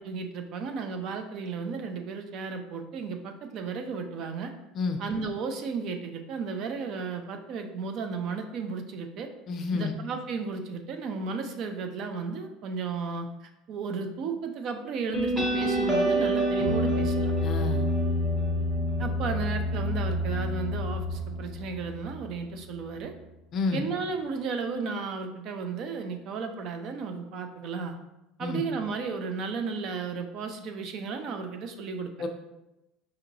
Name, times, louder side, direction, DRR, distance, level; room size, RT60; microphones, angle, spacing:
voice 1, 0.0-4.5 5.0-9.3 9.7-17.3 19.0-23.1 23.7-27.9 28.4-32.1, right 5 dB, 50° right, 6 dB, 0.4 m, -34 dB
voice 2, 9.5-10.0 17.4-17.8 23.5-23.8 28.4-28.6 32.2-32.3, left 4 dB, 40° left, 6 dB, 0.4 m, -29 dB
sound 1, 15.1-22.3, equal, 10° right, 0.8 m, -27 dB
5.1 x 2.8 x 2.6 m, 0.94 s
cardioid pair, 145°, 0 cm